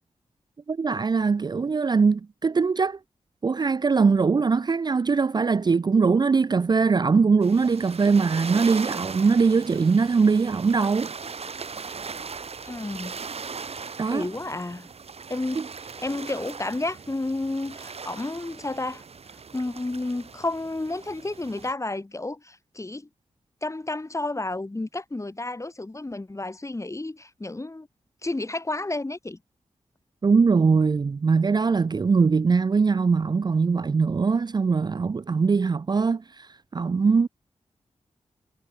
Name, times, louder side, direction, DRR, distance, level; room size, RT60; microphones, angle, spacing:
voice 1, 0.7-3.0 3.4-11.1 14.0-14.3 15.6-15.7 30.2-37.3, right 5 dB, 35° right, 0.4 m, -21 dB
sound 1, 7.4-21.7, right 5 dB, 60° right, 1.8 m, -39 dB
voice 2, 12.6-13.1 14.1-14.9 15.3-15.6 16.0-19.0 19.5-23.1 23.6-27.9 28.2-29.4, left 2 dB, 25° left, 4.8 m, -31 dB
wide cardioid pair, 75°, 12 cm